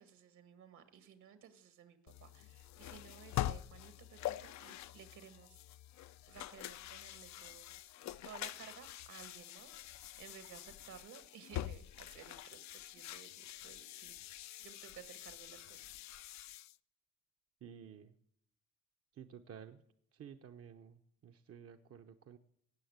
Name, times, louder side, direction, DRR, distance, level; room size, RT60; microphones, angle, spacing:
voice 1, 0.0-5.6 6.3-7.7 8.2-14.2 14.6-15.8, right 8 dB, 75° right, 9 dB, 2.0 m, -56 dB
sound 1, 2.1-16.8, left 14 dB, 65° left, 0.5 m, -45 dB
voice 2, 17.6-18.1 19.1-19.8 20.1-22.4, right 8 dB, 50° right, 6 dB, 0.8 m, -53 dB
17.5 x 6.6 x 8.0 m, 0.74 s
cardioid pair, 90°, 30 cm